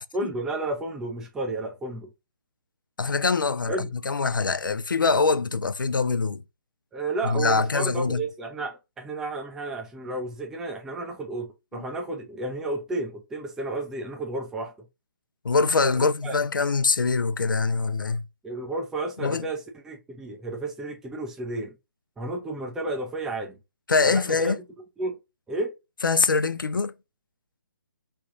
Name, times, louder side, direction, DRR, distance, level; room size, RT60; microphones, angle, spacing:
voice 1, 0.1-2.1 3.7-3.9 6.9-14.9 15.9-16.4 18.4-21.8 22.2-23.6 24.1-24.5 25.0-25.2 25.5-25.7, right 2 dB, 5° right, 0.4 m, -32 dB
voice 2, 3.0-3.8 4.0-6.4 7.2-8.2 11.7-11.8 15.4-18.2 19.2-19.5 23.9-24.6 26.0-26.9, left 4 dB, 75° left, 0.4 m, -23 dB
3.4 x 2.3 x 3.6 m
figure-of-eight pair, 140°, 11 cm